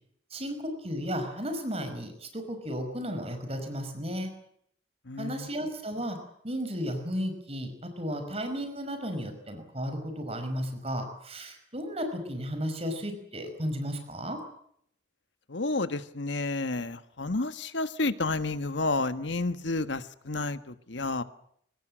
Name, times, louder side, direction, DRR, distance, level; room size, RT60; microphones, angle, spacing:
voice 1, 0.3-4.3 5.2-6.2 6.4-14.4, equal, 35° right, 6 dB, 5.4 m, -34 dB
voice 2, 5.0-5.5 15.5-21.2, left 2 dB, 80° left, 11 dB, 1.5 m, -30 dB
25.0 x 19.0 x 7.8 m, 0.68 s
head